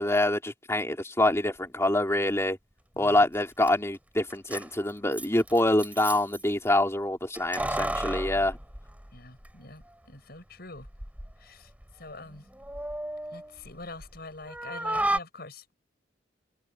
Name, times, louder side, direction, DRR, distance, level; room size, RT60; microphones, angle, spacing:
voice 1, 0.0-2.6 3.0-8.6, left 1 dB, 15° left, 3.6 m, -26 dB
voice 2, 2.9-3.3 9.1-10.9 11.4-12.5 13.3-15.7, left 2 dB, 60° left, 6.8 m, -45 dB
Keys jangling, 3.3-3.4 3.6-3.7 4.3-6.4 7.3-9.5 9.8-9.9 10.8-11.3 11.7-14.2 14.5-15.2, right 1 dB, 10° right, 2.8 m, -33 dB
head